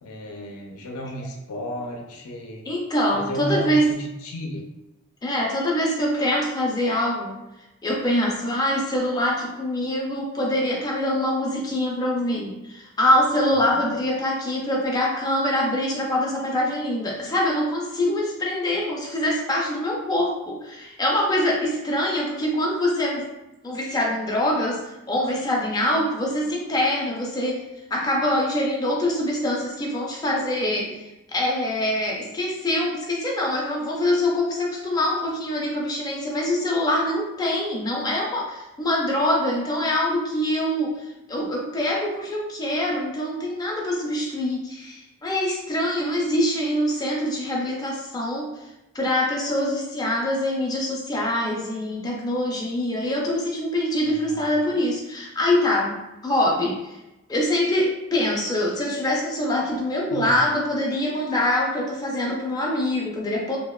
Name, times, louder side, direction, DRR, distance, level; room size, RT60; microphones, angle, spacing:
voice 1, 0.0-2.7 3.1-4.7 13.5-13.9 54.0-54.5 60.1-60.4, equal, 75° left, 1 dB, 0.5 m, -34 dB
voice 2, 2.7-3.9 5.2-7.4 7.8-23.3 23.6-27.7 27.9-48.5 48.9-56.0 56.2-57.0 57.3-63.6, left 1 dB, 15° left, -2 dB, 0.4 m, -24 dB
2.8 x 2.1 x 2.2 m, 0.97 s
head